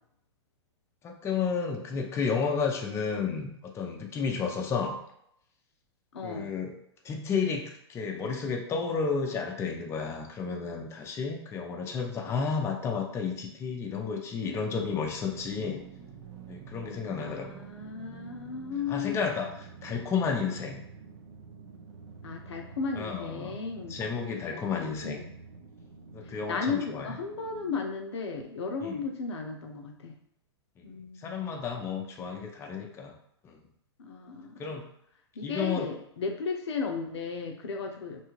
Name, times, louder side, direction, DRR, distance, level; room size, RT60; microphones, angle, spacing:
voice 1, 1.0-5.0 6.2-6.7 7.0-15.8 16.5-17.6 18.9-19.5 19.8-20.8 23.0-23.6 23.9-25.2 26.1-27.1 28.8-28.9 30.8-30.9 31.2-33.1 33.4-33.6 34.6-34.8 35.4-35.9, left 5 dB, 20° left, 1 dB, 0.5 m, -32 dB
voice 2, 6.1-6.5 17.2-19.2 22.2-24.0 24.5-25.2 26.2-30.1 30.8-31.4 32.2-32.4 34.0-34.7 35.4-38.3, left 4 dB, 75° left, 2 dB, 0.6 m, -35 dB
sound 1, 14.7-27.8, right 5 dB, 75° right, 0.5 m, -48 dB
2.7 x 2.3 x 3.0 m, 0.75 s
hypercardioid pair, 110°, 14 cm